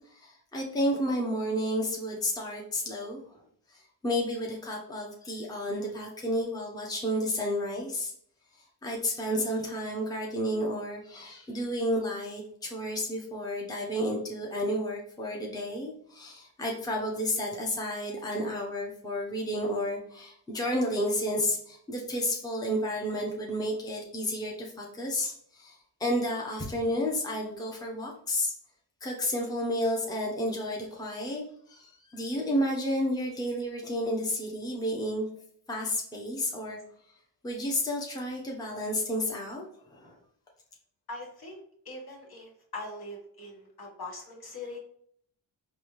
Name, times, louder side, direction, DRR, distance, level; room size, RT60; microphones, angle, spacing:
voice 1, 0.1-3.4 3.7-8.1 8.6-28.5 29.0-35.3 35.7-36.8 37.4-39.7 39.9-40.1, equal, 10° left, -2 dB, 0.8 m, -31 dB
voice 2, 41.1-44.8, left 2 dB, 50° left, -1 dB, 1.4 m, -42 dB
4.0 x 2.4 x 3.1 m, 0.63 s
cardioid pair, 60°, 47 cm